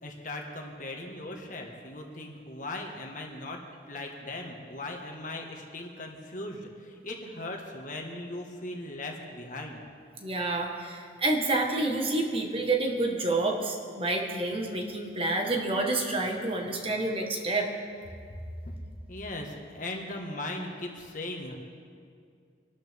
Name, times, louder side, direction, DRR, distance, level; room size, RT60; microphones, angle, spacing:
voice 1, 0.0-9.8 19.1-21.6, left 2 dB, 50° left, 1 dB, 1.7 m, -38 dB
voice 2, 10.2-17.7, right 2 dB, 30° right, 1 dB, 1.5 m, -28 dB
23.5 x 12.5 x 3.6 m, 2.3 s
head